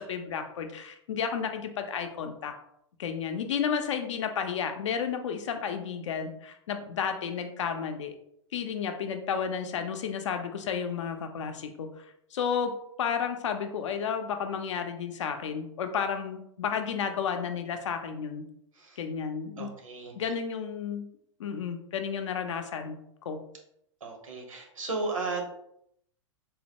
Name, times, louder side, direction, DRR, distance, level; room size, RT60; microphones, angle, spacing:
voice 1, 0.0-2.5 3.0-8.1 8.5-12.0 12.3-12.7 13.0-18.4 19.0-19.7 20.2-21.1 21.4-23.0 23.3-23.4, left 7 dB, 65° left, 6 dB, 0.5 m, -32 dB
voice 2, 19.6-20.3 24.0-25.5, right 3 dB, 85° right, 2 dB, 1.0 m, -35 dB
3.8 x 2.2 x 2.8 m, 0.75 s
hypercardioid pair, 115°, 17 cm